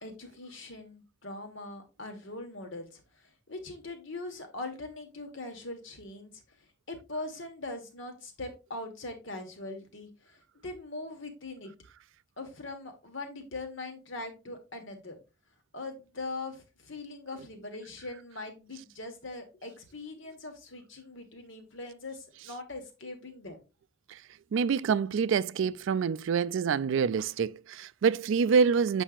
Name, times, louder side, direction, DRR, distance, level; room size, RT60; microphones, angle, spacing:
voice 1, 0.0-11.7 12.4-15.2 15.7-23.6, left 2 dB, 65° left, 1.4 m, -41 dB
voice 2, 24.5-29.0, right 6 dB, 65° right, 0.3 m, -26 dB
7.3 x 5.4 x 2.5 m
head